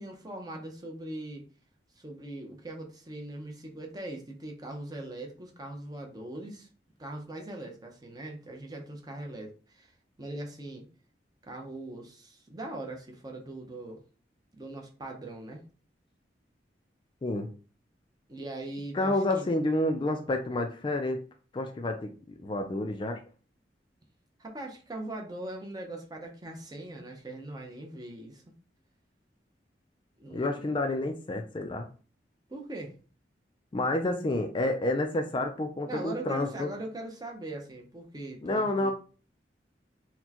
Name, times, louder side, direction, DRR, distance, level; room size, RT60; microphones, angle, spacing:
voice 1, 0.0-1.4 2.0-6.7 7.0-9.9 10.2-10.9 11.4-14.0 14.6-15.6 18.3-19.5 24.4-28.4 30.2-30.7 32.5-33.0 35.9-38.9, right 2 dB, 20° right, 2 dB, 0.6 m, -41 dB
voice 2, 18.9-21.2 21.5-22.1 22.4-23.2 30.3-31.9 33.7-36.7 38.4-38.9, left 2 dB, 30° left, 5 dB, 0.3 m, -29 dB
4.2 x 2.2 x 2.8 m, 0.38 s
head